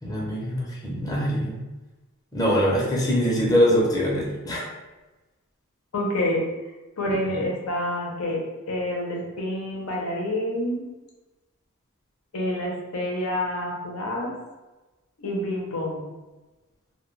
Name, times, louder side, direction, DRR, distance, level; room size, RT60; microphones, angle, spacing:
voice 1, 0.0-1.6 2.3-4.6 7.3-7.4, equal, 15° left, -4 dB, 0.6 m, -23 dB
voice 2, 5.9-6.4 7.0-8.4 8.7-10.8 12.3-14.3 15.2-16.0, left 1 dB, 80° left, -1 dB, 0.7 m, -28 dB
2.2 x 2.2 x 3.1 m, 1.1 s
head